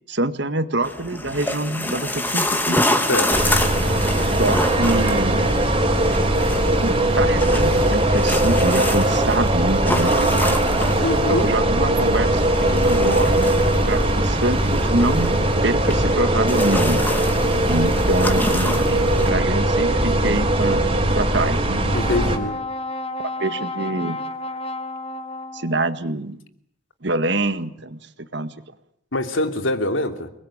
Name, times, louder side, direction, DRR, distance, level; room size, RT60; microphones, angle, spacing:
voice 1, 0.1-2.8 4.2-5.5 6.8-10.9 11.3-13.5 13.9-15.3 15.6-17.0 17.7-20.9 21.1-21.8 23.2-24.2 25.5-26.4 27.0-28.0 28.3-28.5, right 2 dB, 60° right, 11 dB, 1.7 m, -25 dB
sound 1, 0.8-19.3, left 1 dB, 10° left, 2.4 m, -28 dB
sound 2, 3.3-22.4, right 1 dB, 25° right, 4.1 m, -20 dB
voice 2, 11.0-11.5 21.9-22.6 29.1-30.3, left 2 dB, 75° left, 7 dB, 2.9 m, -24 dB
Brass instrument, 21.6-26.0, left 2 dB, 30° left, 1.5 m, -32 dB
29.0 x 21.0 x 8.8 m, 0.72 s
head